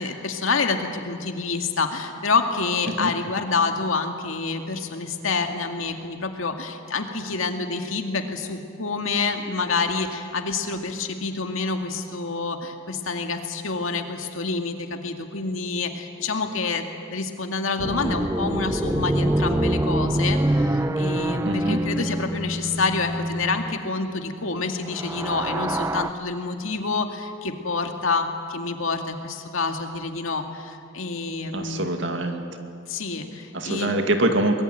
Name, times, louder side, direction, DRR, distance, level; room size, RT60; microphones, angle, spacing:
voice 1, 0.0-16.8 17.1-31.9 32.9-33.9, left 4 dB, 80° left, 4 dB, 2.2 m, -27 dB
sound 1, 17.8-23.8 24.8-26.1, right 1 dB, 15° right, 0.7 m, -25 dB
voice 2, 21.4-21.8 31.5-32.4 33.5-34.6, right 1 dB, 60° right, 5 dB, 2.3 m, -24 dB
23.5 x 21.0 x 9.3 m, 2.4 s
head